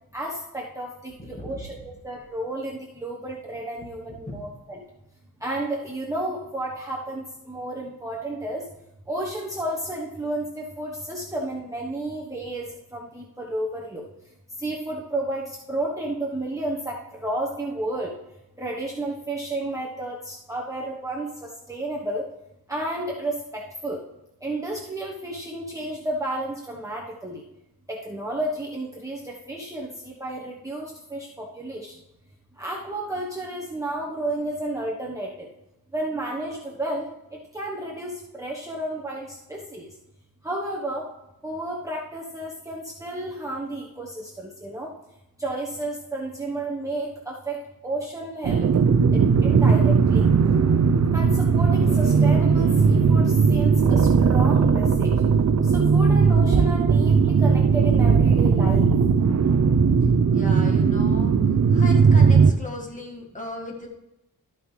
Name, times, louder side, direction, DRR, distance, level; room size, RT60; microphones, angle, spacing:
voice 1, 0.1-4.8 5.4-8.6 9.1-14.0 14.6-18.1 18.6-22.3 22.7-24.0 24.4-27.4 27.9-31.9 32.6-35.5 35.9-37.1 37.5-39.9 40.4-41.0 41.4-44.9 45.4-47.6 47.8-48.7 49.1-50.3 51.1-55.1 55.6-58.9, right 1 dB, 10° right, -4 dB, 1.0 m, -32 dB
voice 2, 1.2-1.6 4.3-4.4 60.0-61.3 61.7-63.9, left 1 dB, 20° left, -1 dB, 1.8 m, -37 dB
sound 1, 48.4-62.5, right 5 dB, 50° right, 0.6 m, -18 dB
12.5 x 9.3 x 3.2 m, 0.91 s
wide cardioid pair, 150°, 37 cm